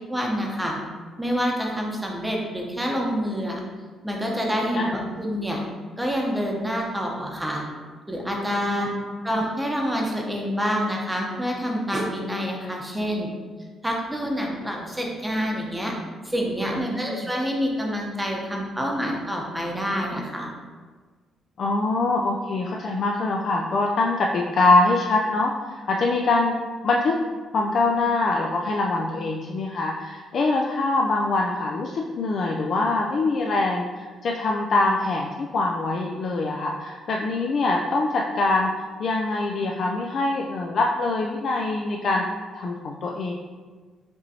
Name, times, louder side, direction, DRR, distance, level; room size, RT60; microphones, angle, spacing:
voice 1, 0.1-0.8 1.2-3.6 4.0-5.6 6.0-7.6 8.1-8.9 9.2-13.3 13.8-15.9 16.2-20.5, equal, 10° right, -1 dB, 0.8 m, -27 dB
voice 2, 16.6-17.3 21.6-26.5 26.8-27.2 27.5-38.7 39.0-42.2 42.6-43.3, left 3 dB, 55° left, -1 dB, 0.3 m, -24 dB
5.1 x 3.0 x 2.7 m, 1.5 s
cardioid pair, 90°, 0 cm